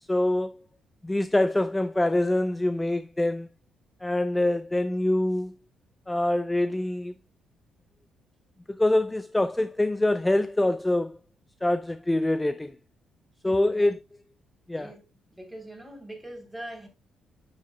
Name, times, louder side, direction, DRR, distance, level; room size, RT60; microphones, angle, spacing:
voice 1, 0.0-0.6 1.0-3.5 4.0-5.5 6.1-7.2 8.7-11.2 11.6-12.8 13.4-14.0 14.7-14.9, left 1 dB, 10° left, 0.4 m, -25 dB
voice 2, 13.4-13.9 14.8-15.0 15.3-16.9, right 1 dB, 5° right, 3.5 m, -42 dB
9.5 x 7.4 x 2.2 m
cardioid pair, 90°, 0 cm